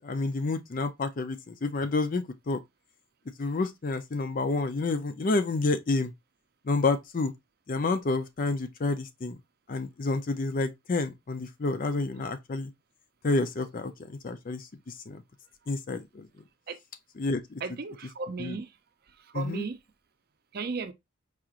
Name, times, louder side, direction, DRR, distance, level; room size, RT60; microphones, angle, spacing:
voice 1, 0.0-2.6 3.4-6.1 6.7-7.3 7.7-9.4 9.7-12.7 13.2-14.6 15.1-15.2 15.7-16.3 17.2-17.6 18.4-18.6 19.3-19.6, left 3 dB, 45° left, 0.5 m, -29 dB
voice 2, 17.6-18.7 19.3-19.8 20.5-20.9, right 4 dB, 50° right, 0.5 m, -35 dB
4.8 x 2.9 x 2.4 m
head